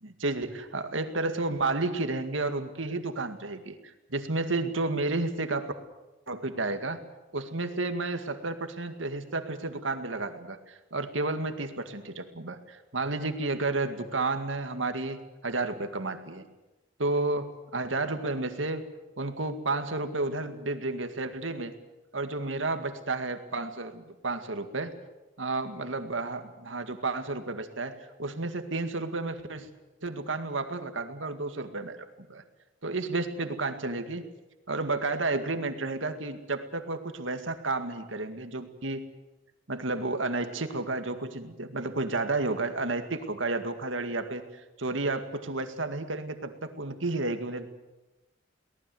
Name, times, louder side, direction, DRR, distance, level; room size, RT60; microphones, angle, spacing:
voice 1, 0.0-5.7 6.3-7.0 7.3-16.4 17.0-18.9 19.2-21.7 22.1-24.9 25.4-29.7 30.0-32.4 32.8-34.2 34.7-39.0 39.7-47.7, right 2 dB, 80° right, 8 dB, 2.1 m, -31 dB
23.5 x 18.5 x 7.8 m, 1.1 s
head